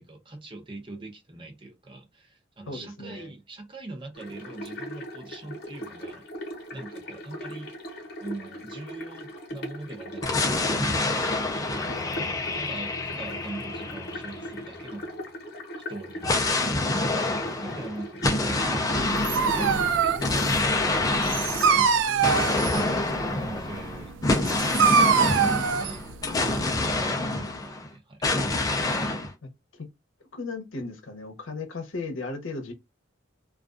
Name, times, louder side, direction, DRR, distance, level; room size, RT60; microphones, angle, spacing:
voice 1, 0.0-7.7 8.2-11.1 12.5-15.1 15.9-21.2 21.7-22.7 23.1-26.2 26.8-27.6 27.8-28.3, right 2 dB, 25° right, 0.6 m, -41 dB
voice 2, 2.7-3.3 11.8-12.1 17.7-17.8 27.2-27.6 29.4-29.9 30.3-32.7, left 3 dB, 85° left, 0.7 m, -37 dB
sound 1, 4.2-21.8, equal, 55° left, 0.9 m, -39 dB
sound 2, 10.2-14.9 16.2-27.9 28.2-29.3, left 2 dB, 20° left, 0.4 m, -27 dB
Dog, 19.0-26.8, right 6 dB, 70° right, 0.3 m, -25 dB
2.3 x 2.3 x 2.4 m
head